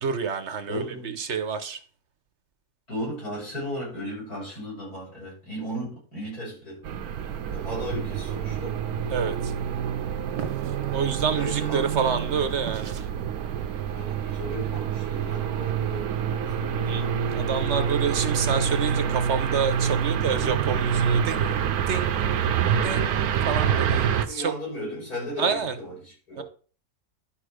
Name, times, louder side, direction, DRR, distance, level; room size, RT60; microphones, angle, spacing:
voice 1, 0.0-0.8 1.2-1.8 7.2-7.8 9.1-9.5 10.9-13.0 16.9-22.5 22.8-24.4 25.4-25.7 26.4-26.5, right 6 dB, 50° right, 1.0 m, -29 dB
voice 2, 0.7-1.2 2.9-7.1 7.5-8.8 11.3-11.9 13.9-17.0 23.6-26.4, equal, 70° left, 6.6 m, -36 dB
sound 1, 6.8-24.3, right 8 dB, 70° right, 1.2 m, -27 dB
sound 2, 10.4-10.8 12.6-13.1, right 7 dB, 90° right, 1.7 m, -36 dB
11.5 x 5.3 x 5.0 m
omnidirectional pair, 1.7 m